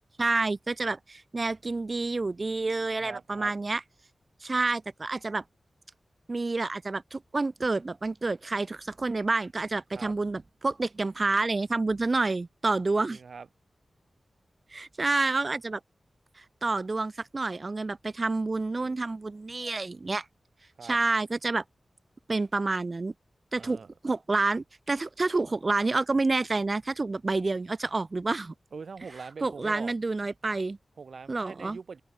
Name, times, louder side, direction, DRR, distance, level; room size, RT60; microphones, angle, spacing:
voice 1, 0.2-3.8 4.4-5.4 6.3-13.2 14.7-15.8 16.4-20.3 20.8-21.6 22.3-23.1 23.5-28.5 29.4-30.8 31.3-31.8, right 3 dB, 35° right, 0.5 m, -28 dB
voice 2, 3.0-3.5 9.9-10.1 13.1-13.5 20.8-21.0 23.6-23.9 28.7-29.9 31.0-32.0, right 5 dB, 70° right, 1.9 m, -43 dB
wide cardioid pair, 120°, 0 cm